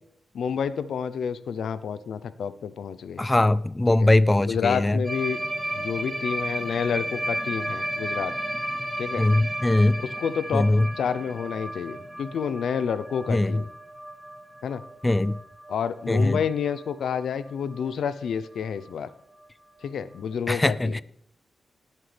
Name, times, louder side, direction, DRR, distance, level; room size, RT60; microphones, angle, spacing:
voice 1, 0.3-3.2 3.9-4.1 4.4-5.4 5.7-8.3 9.0-9.2 10.0-10.7 11.0-13.7 14.6-14.8 15.7-19.1 19.8-21.0, left 7 dB, 85° left, 0.7 m, -29 dB
voice 2, 3.2-5.0 9.2-10.0 10.5-10.9 13.3-13.5 15.0-15.3 16.1-16.4 20.5-21.0, left 2 dB, 15° left, 0.4 m, -21 dB
sound 1, 5.0-16.9 17.2-17.4 17.7-17.9 18.2-18.3 18.6-18.7 19.8-19.9, right 1 dB, 5° right, 2.6 m, -34 dB
19.0 x 7.6 x 3.4 m
cardioid pair, 90°, 0 cm